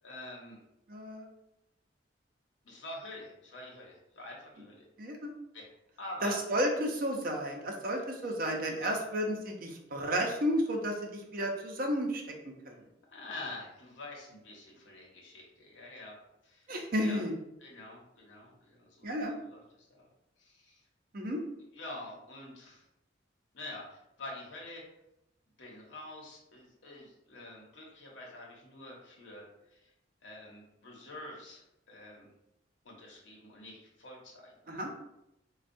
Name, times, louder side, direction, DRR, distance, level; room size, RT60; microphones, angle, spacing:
voice 1, 0.0-0.6 2.6-4.8 5.5-5.6 6.0-6.4 8.8-9.0 13.1-16.1 16.4-16.7 17.0-17.2 17.6-20.1 20.4-20.8 21.7-22.8 23.5-24.8 25.6-29.5 29.7-29.9 30.2-32.3 32.8-34.9, left 2 dB, 85° left, -3 dB, 0.9 m, -46 dB
voice 2, 0.9-1.3 5.0-5.3 6.2-12.8 16.7-17.3 19.0-19.3 21.1-21.4 34.7-34.9, equal, 50° right, 1 dB, 0.6 m, -32 dB
4.3 x 2.3 x 2.6 m, 0.85 s
head